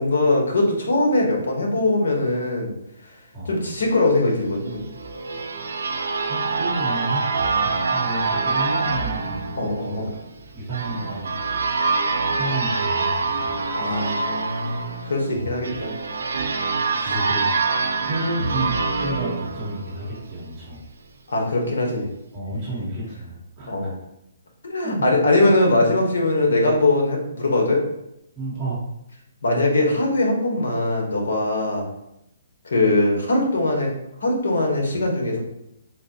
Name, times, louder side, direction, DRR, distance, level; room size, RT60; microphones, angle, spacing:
voice 1, 0.0-2.8 3.5-4.9 9.6-10.1 13.8-15.9 21.3-22.1 23.7-23.9 24.6-27.8 29.4-31.9 32.6-33.9 34.2-35.4, left 2 dB, 85° left, 0 dB, 1.0 m, -21 dB
sound 1, 4.7-20.3, right 4 dB, 85° right, 0.4 m, -25 dB
voice 2, 5.8-7.2 7.6-9.5 9.8-10.1 10.5-11.6 12.3-13.6 15.3-15.5 17.0-20.8 22.3-23.7 24.8-25.1 28.4-28.8, right 1 dB, 15° right, -9 dB, 1.0 m, -31 dB
3.9 x 2.3 x 2.8 m, 0.82 s
hypercardioid pair, 165°, 0 cm